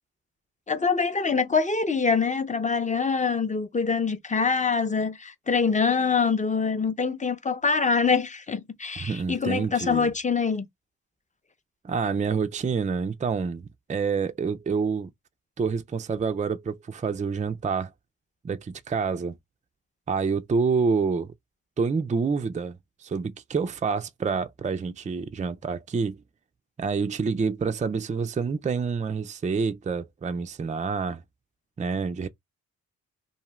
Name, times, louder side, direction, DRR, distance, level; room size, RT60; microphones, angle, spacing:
voice 1, 0.7-10.7, left 5 dB, 20° left, 0.7 m, -25 dB
voice 2, 9.0-10.1 11.8-15.1 15.6-17.9 18.4-19.4 20.1-21.3 21.8-26.2 26.8-31.2 31.8-32.3, right 5 dB, 20° right, 0.4 m, -27 dB
2.7 x 2.4 x 3.1 m
supercardioid pair, 55°, 35 cm